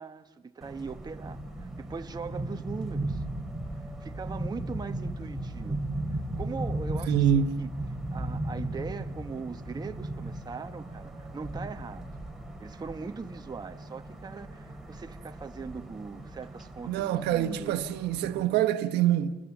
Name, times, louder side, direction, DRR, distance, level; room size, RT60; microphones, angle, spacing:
voice 1, 0.0-3.2 4.0-5.8 6.1-7.7 8.1-12.1 12.6-17.8, right 5 dB, 25° right, 1.2 m, -40 dB
sound 1, 0.6-18.4, right 1 dB, ahead, 3.2 m, -37 dB
voice 2, 7.1-7.6 16.9-19.4, right 10 dB, 85° right, 1.2 m, -25 dB
29.5 x 20.5 x 7.3 m
cardioid pair, 110°, 17 cm